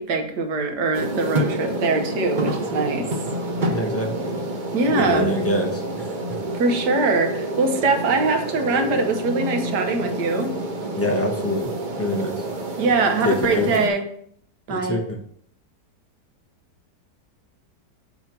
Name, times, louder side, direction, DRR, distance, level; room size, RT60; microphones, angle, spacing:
voice 1, 0.0-3.1 3.6-3.7 4.7-5.3 6.5-10.5 12.8-14.0 14.7-15.0, right 3 dB, 80° right, 4 dB, 1.5 m, -22 dB
sound 1, 0.9-13.9, right 1 dB, 40° right, 0.7 m, -28 dB
voice 2, 3.7-4.3 4.9-6.1 10.9-11.7 12.0-12.4 13.2-13.7 14.7-15.2, left 1 dB, 20° left, 0 dB, 0.4 m, -25 dB
7.7 x 3.0 x 5.9 m, 0.64 s
omnidirectional pair, 1.8 m